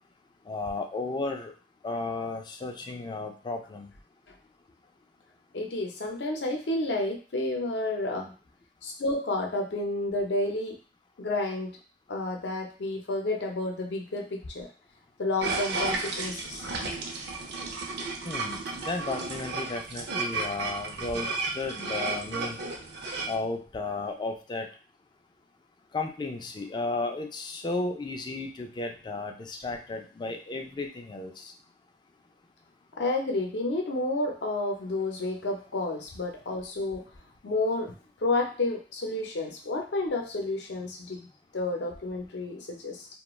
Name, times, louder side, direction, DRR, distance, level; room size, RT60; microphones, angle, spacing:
voice 1, 0.5-1.5 1.8-3.9 18.2-22.6 23.3-24.7 25.9-31.5, left 3 dB, 25° left, 4 dB, 0.3 m, -34 dB
voice 2, 5.5-8.3 8.8-10.8 11.2-11.7 12.1-14.7 15.2-16.7 33.0-37.0 37.4-37.9 38.2-41.3 41.5-43.1, left 2 dB, 70° left, 2 dB, 0.6 m, -30 dB
sound 1, 15.4-23.4, right 3 dB, 65° right, 0.5 m, -33 dB
2.3 x 2.2 x 3.0 m, 0.36 s
head